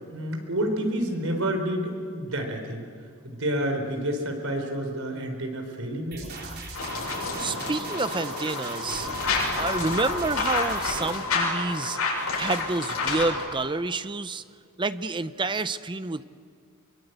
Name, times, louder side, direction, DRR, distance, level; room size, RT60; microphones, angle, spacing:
voice 1, 0.1-2.9 3.2-6.3, right 1 dB, 70° right, 4 dB, 4.4 m, -29 dB
sound 1, 6.1-11.1, right 2 dB, 50° right, 4.5 m, -38 dB
sound 2, 6.7-13.4, left 3 dB, 85° left, 7.9 m, -29 dB
voice 2, 7.4-9.1 9.5-12.0 12.4-14.4 14.8-16.2, right 3 dB, 20° right, 13 dB, 0.7 m, -29 dB
24.5 x 23.5 x 8.1 m, 2.2 s
head